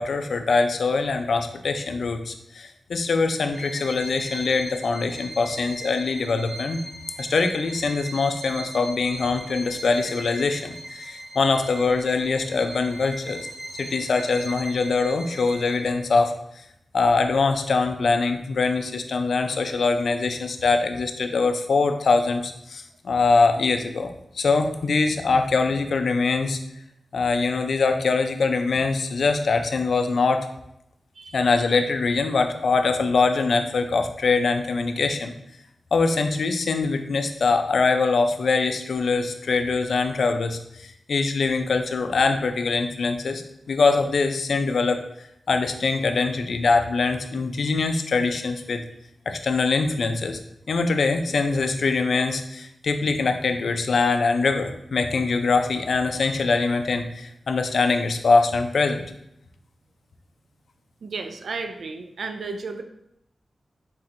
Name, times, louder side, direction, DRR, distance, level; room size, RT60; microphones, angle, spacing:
voice 1, 0.0-6.8 7.2-13.5 13.8-16.6 16.9-26.6 27.1-30.5 31.3-35.3 35.9-43.4 43.7-45.0 45.5-48.8 49.3-50.4 50.7-59.0, left 4 dB, 70° left, 7 dB, 0.4 m, -23 dB
Bowed string instrument, 3.5-16.0, right 1 dB, 25° right, 0.7 m, -39 dB
voice 2, 61.0-62.8, right 4 dB, 80° right, 7 dB, 0.4 m, -33 dB
4.3 x 4.0 x 2.5 m, 0.78 s
wide cardioid pair, 135°, 0 cm